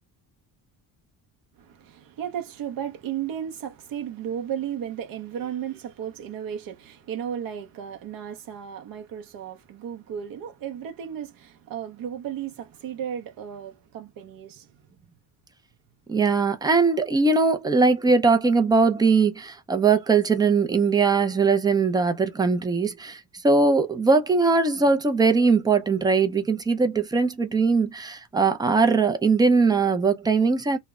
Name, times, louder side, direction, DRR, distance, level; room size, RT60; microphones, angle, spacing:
voice 1, 1.6-14.7, right 9 dB, 60° right, 0.6 m, -34 dB
voice 2, 16.1-30.8, right 4 dB, 10° right, 0.3 m, -21 dB
2.1 x 2.0 x 3.4 m
cardioid pair, 135°, 39 cm